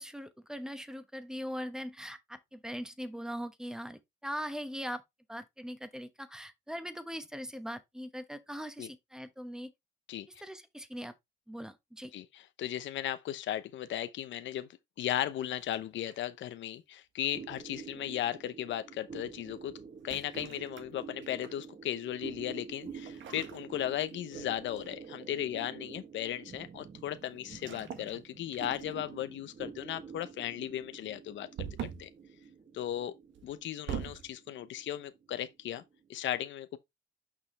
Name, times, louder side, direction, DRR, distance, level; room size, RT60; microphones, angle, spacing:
voice 1, 0.0-5.0 5.3-9.7 10.4-11.1 11.5-12.1, equal, 5° right, 1.1 m, -41 dB
voice 2, 12.1-14.7 15.0-19.8 20.0-32.1 32.7-33.1 33.4-35.8 36.1-36.8, left 12 dB, 70° left, 0.8 m, -36 dB
sound 1, 15.6-16.4 17.6-17.9 20.0-21.6 23.0-24.4 24.7-25.1 27.5-28.2 28.5-29.1 31.6-32.2 33.3-34.3, right 8 dB, 75° right, 1.4 m, -43 dB
sound 2, 17.3-36.1, right 6 dB, 40° right, 1.1 m, -48 dB
6.7 x 5.6 x 3.2 m
cardioid pair, 90°, 20 cm